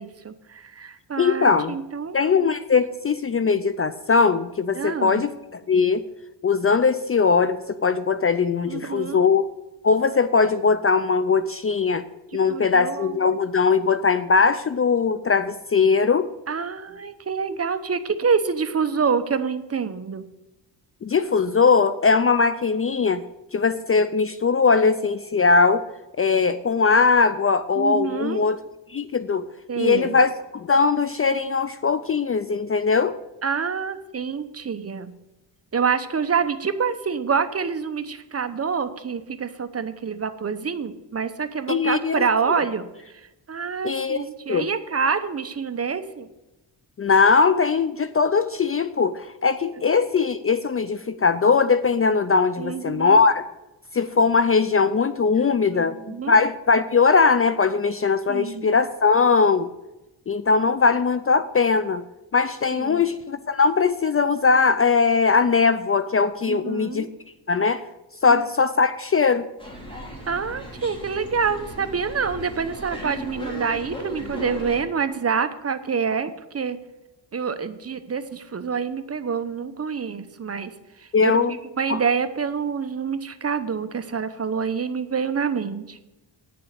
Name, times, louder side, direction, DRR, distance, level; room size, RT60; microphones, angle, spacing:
voice 1, 0.0-2.2 4.7-5.2 8.7-9.3 12.3-13.2 16.5-20.3 27.8-28.4 29.7-30.2 33.4-35.1 35.7-46.3 52.6-53.2 55.7-56.4 58.3-58.7 62.7-63.1 66.5-67.1 68.3-68.4 70.3-76.8 77.3-80.7 81.0-86.0, right 6 dB, 35° right, 10 dB, 0.9 m, -27 dB
voice 2, 1.2-1.7 2.1-6.0 6.4-9.5 9.8-12.0 12.3-16.3 21.0-23.2 23.5-25.9 26.2-28.6 28.9-29.5 29.8-33.2 41.7-42.2 43.8-44.7 47.0-53.4 53.9-59.7 60.3-62.0 62.3-67.1 67.5-67.8 68.2-69.4 81.1-81.6 81.9-82.0, left 5 dB, 30° left, 13 dB, 0.4 m, -20 dB
sound 1, 69.6-74.8, equal, 10° left, 3.4 m, -36 dB
9.7 x 7.0 x 8.2 m, 0.98 s
cardioid pair, 100°, 45 cm